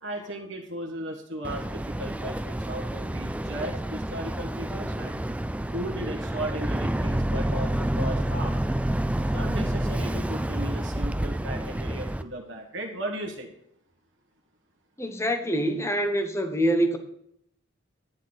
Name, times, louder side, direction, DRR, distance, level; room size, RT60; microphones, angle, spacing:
voice 1, 0.0-5.2 5.7-8.6 9.3-13.5, right 1 dB, 60° right, 1.7 m, -36 dB
Boat Water vehicle, 1.4-12.2, right 1 dB, 5° right, 0.3 m, -29 dB
voice 2, 15.0-17.0, equal, 15° left, 1.1 m, -25 dB
11.5 x 9.6 x 4.1 m
head